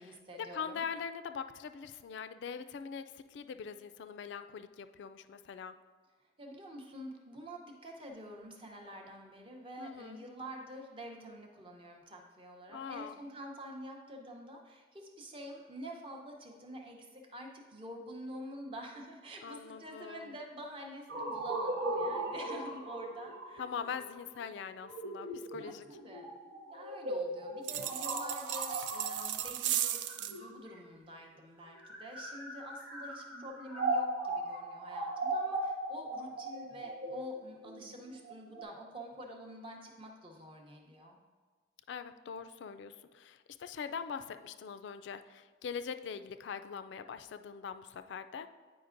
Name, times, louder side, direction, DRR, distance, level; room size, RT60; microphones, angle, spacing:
voice 1, 0.0-0.8 6.4-23.7 25.2-26.3 26.7-41.2, equal, 30° right, 1 dB, 0.7 m, -47 dB
voice 2, 0.5-3.0 3.3-5.7 9.8-10.2 12.7-13.2 19.4-20.3 23.6-25.8 41.9-48.5, left 6 dB, 70° left, 10 dB, 0.3 m, -42 dB
sound 1, 21.1-30.9 31.7-38.6, right 2 dB, 90° right, 1.0 m, -38 dB
sound 2, 27.6-30.4, right 11 dB, 70° right, 0.3 m, -35 dB
9.4 x 5.0 x 2.5 m, 1.5 s
head